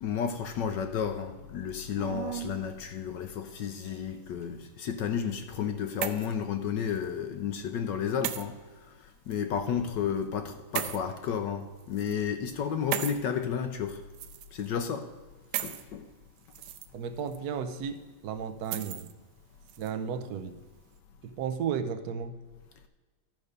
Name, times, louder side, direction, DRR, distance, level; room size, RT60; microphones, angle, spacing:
voice 1, 0.0-8.6 9.0-14.0 14.5-15.1 15.6-16.1, left 7 dB, 70° left, 1.1 m, -32 dB
sound 1, 2.0-2.6 3.5-4.2 5.5-6.4 6.9-7.0 8.2-8.5 9.3-9.4 10.7-11.0 11.8-12.2 12.9-13.2 14.1-14.7 15.5-15.8 16.4-16.9 17.3-17.4 18.6-19.1 19.7-19.9, right 11 dB, 85° right, 1.5 m, -36 dB
voice 2, 16.9-19.1 19.8-20.6 21.2-22.4, right 7 dB, 65° right, 1.0 m, -34 dB
12.0 x 5.1 x 6.6 m
omnidirectional pair, 2.3 m